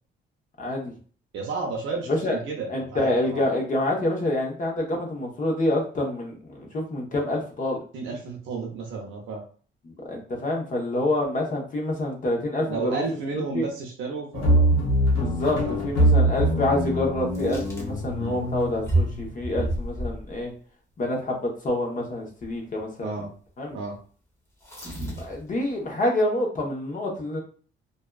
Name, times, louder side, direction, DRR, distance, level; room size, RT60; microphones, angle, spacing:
voice 1, 0.6-0.9 2.1-2.4 2.7-7.8 9.8-13.0 13.3-13.7 15.1-20.5 21.0-23.2 23.6-23.8 25.2-27.4, left 1 dB, 40° left, 0 dB, 0.9 m, -27 dB
voice 2, 1.3-3.4 7.9-9.4 12.7-14.8 15.1-15.3 15.6-16.1 18.2-18.4 23.0-23.3 23.7-24.0, right 4 dB, 80° right, 0 dB, 0.6 m, -32 dB
sound 1, 14.3-19.3, right 1 dB, 75° left, 0.8 m, -23 dB
sound 2, 17.3-17.9 18.9-20.4 22.4-22.6 24.6-25.5, right 2 dB, 15° left, 1.0 m, -29 dB
2.6 x 2.3 x 2.3 m, 0.42 s
cardioid pair, 90°, 20 cm